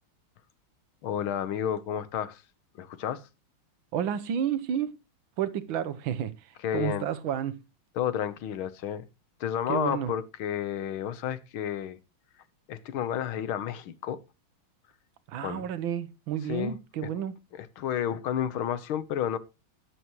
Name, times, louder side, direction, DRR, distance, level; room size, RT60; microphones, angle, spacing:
voice 1, 1.0-2.4 2.8-3.3 6.6-7.1 8.0-9.0 9.4-12.0 12.7-14.2 15.4-15.7 16.5-17.1 17.5-19.4, left 9 dB, 80° left, 1.8 m, -31 dB
voice 2, 3.9-5.0 5.4-7.6 9.7-10.1 15.3-17.3, right 9 dB, 75° right, 1.7 m, -31 dB
13.0 x 10.5 x 3.1 m
omnidirectional pair, 2.3 m